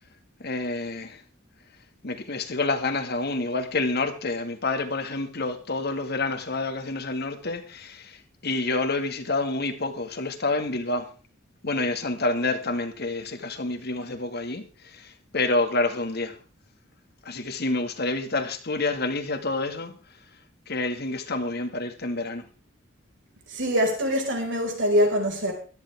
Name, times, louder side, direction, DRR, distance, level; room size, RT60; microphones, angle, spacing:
voice 1, 0.4-1.2 2.0-8.2 8.4-11.1 11.6-14.7 14.9-16.4 17.3-19.9 20.7-22.4, left 2 dB, 55° left, 1.9 m, -28 dB
voice 2, 23.5-25.5, equal, 65° right, 5.2 m, -23 dB
17.0 x 13.5 x 3.6 m
head